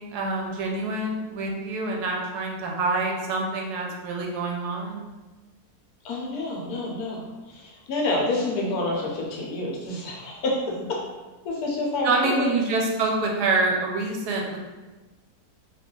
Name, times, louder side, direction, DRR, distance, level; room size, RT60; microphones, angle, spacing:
voice 1, 0.0-5.0 8.3-8.4 12.0-14.6, right 3 dB, 85° right, 0 dB, 1.2 m, -26 dB
voice 2, 6.0-10.6 10.9-11.0 11.4-12.5, left 2 dB, 75° left, -2 dB, 1.2 m, -28 dB
3.0 x 2.4 x 3.7 m, 1.2 s
omnidirectional pair, 1.6 m